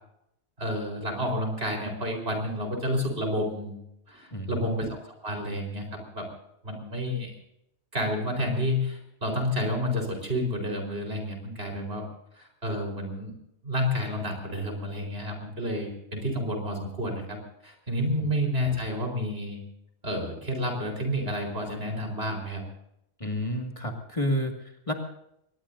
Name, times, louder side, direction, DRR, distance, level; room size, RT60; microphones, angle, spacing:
voice 1, 0.6-3.8 4.1-6.3 6.6-7.3 7.9-12.0 12.4-13.3 13.6-17.4 17.6-19.6 20.0-22.6, equal, 60° right, 2 dB, 4.7 m, -30 dB
voice 2, 4.3-4.8 18.2-18.3 23.2-24.9, equal, 30° left, 2 dB, 2.2 m, -30 dB
23.5 x 20.0 x 2.7 m, 0.78 s
omnidirectional pair, 1.2 m